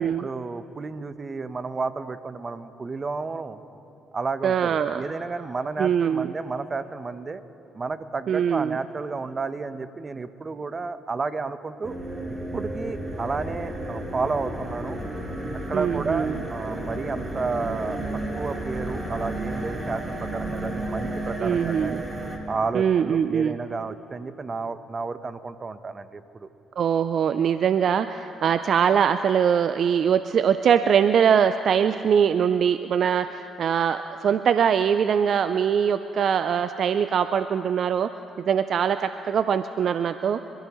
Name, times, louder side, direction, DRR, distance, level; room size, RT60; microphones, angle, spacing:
voice 1, 0.0-3.6 4.1-7.4 7.7-11.9 12.5-15.0 15.5-22.0 22.5-26.5, right 4 dB, 40° right, 11 dB, 0.9 m, -31 dB
voice 2, 4.4-5.0 5.8-6.3 8.3-8.8 15.7-16.4 21.4-22.0 22.7-23.6 26.8-38.1 38.4-40.4, right 8 dB, 60° right, 11 dB, 0.4 m, -22 dB
sound 1, 11.8-22.4, right 1 dB, 20° right, 3.6 m, -32 dB
27.0 x 14.5 x 3.1 m, 2.7 s
supercardioid pair, 55°, 0 cm